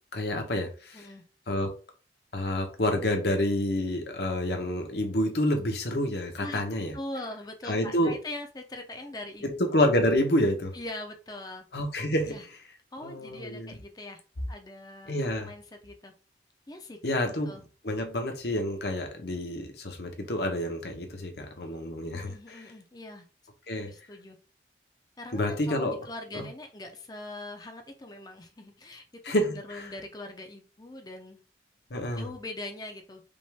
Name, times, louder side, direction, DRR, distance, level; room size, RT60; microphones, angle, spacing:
voice 1, 0.1-1.1 1.5-1.7 2.3-6.9 7.6-8.2 9.4-10.7 11.7-12.4 13.0-13.7 15.1-15.5 17.0-17.5 17.8-22.7 23.7-23.9 25.3-26.0 26.3-26.5 29.2-29.9 31.9-32.3, left 1 dB, 65° left, 1.0 m, -28 dB
voice 2, 6.9-9.5 10.7-11.7 12.3-12.4 12.9-14.2 14.5-16.1 16.7-17.0 17.5-17.6 22.1-23.3 23.9-24.4 25.2-29.0 29.5-31.4 32.1-33.2, left 2 dB, 20° left, 0.6 m, -42 dB
5.2 x 2.5 x 3.4 m
head